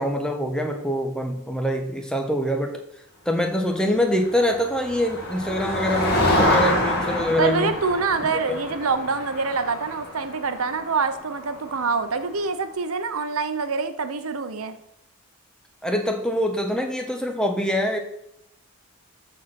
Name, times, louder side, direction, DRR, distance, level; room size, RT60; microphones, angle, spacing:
voice 1, 0.0-2.8 3.2-7.7 8.2-8.6 15.8-18.0, equal, 5° left, 4 dB, 1.1 m, -24 dB
Motor vehicle (road), 4.3-12.0, left 1 dB, 45° left, 2.1 m, -26 dB
voice 2, 7.4-14.8, right 4 dB, 75° right, 9 dB, 0.9 m, -25 dB
13.0 x 4.5 x 5.9 m, 0.80 s
head